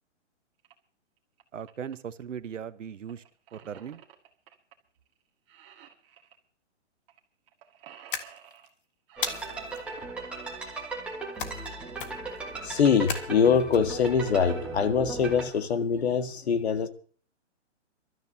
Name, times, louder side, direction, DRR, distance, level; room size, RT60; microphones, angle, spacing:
sound 1, 0.6-0.7 1.2-1.9 3.1-4.7 5.1-5.2 5.5-6.4 7.1-7.2 7.5-8.7 9.1-10.2 11.9-12.0 12.5-12.6 12.8-12.9 13.3-13.6 14.0-14.4, right 9 dB, 25° right, 1.9 m, -53 dB
voice 1, 1.5-3.2 3.5-4.0, right 8 dB, 85° right, 1.2 m, -38 dB
sound 2, 8.1-8.7 9.2-9.8 11.4-11.7 12.0-12.4 13.1-13.8, left 6 dB, 45° left, 1.8 m, -35 dB
sound 3, 9.2-15.5, right 3 dB, 5° right, 1.5 m, -37 dB
voice 2, 12.6-16.9, left 6 dB, 60° left, 1.9 m, -24 dB
26.5 x 13.0 x 2.8 m
hypercardioid pair, 170°, 36 cm